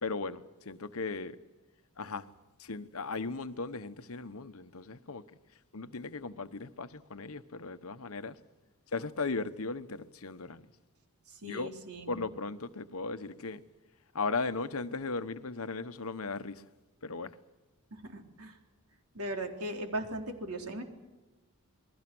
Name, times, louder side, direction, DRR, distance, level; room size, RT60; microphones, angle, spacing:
voice 1, 0.0-1.4 2.0-2.3 2.6-5.2 5.7-8.4 8.9-10.7 11.4-11.7 12.1-13.6 14.1-16.6 17.0-17.4, left 3 dB, 70° left, 1.1 m, -37 dB
voice 2, 11.3-12.1 17.9-18.6 19.1-20.8, right 1 dB, 85° right, 3.8 m, -38 dB
28.5 x 21.0 x 6.2 m
head